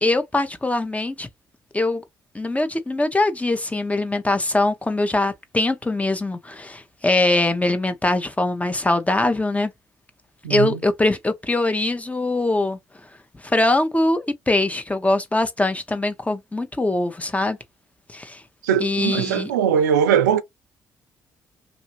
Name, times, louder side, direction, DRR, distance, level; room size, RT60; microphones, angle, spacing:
voice 1, 0.0-1.3 1.7-2.0 2.3-9.7 10.5-12.8 13.4-17.6 18.1-18.4 18.8-19.5, left 2 dB, 15° left, 0.8 m, -22 dB
voice 2, 10.4-10.8 18.6-20.4, right 8 dB, 90° right, 0.4 m, -20 dB
2.6 x 2.6 x 2.9 m
hypercardioid pair, 45°, 9 cm